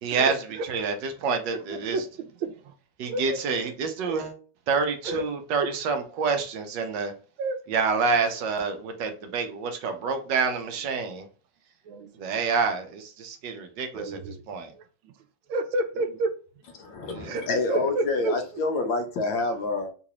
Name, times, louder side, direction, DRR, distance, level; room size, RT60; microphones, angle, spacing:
voice 1, 0.0-2.0 3.0-4.3 4.7-7.1 7.7-11.3 12.1-14.7 17.0-17.4, right 5 dB, 70° right, 1.3 m, -28 dB
voice 2, 1.7-2.7 3.1-3.4 4.1-4.2 5.1-5.2 7.4-7.6 11.9-12.1 13.9-14.4 15.5-16.3 17.3-18.3, right 2 dB, 85° right, 1.4 m, -30 dB
voice 3, 16.7-19.9, left 3 dB, 75° left, 1.4 m, -27 dB
3.9 x 2.5 x 2.9 m
omnidirectional pair, 2.1 m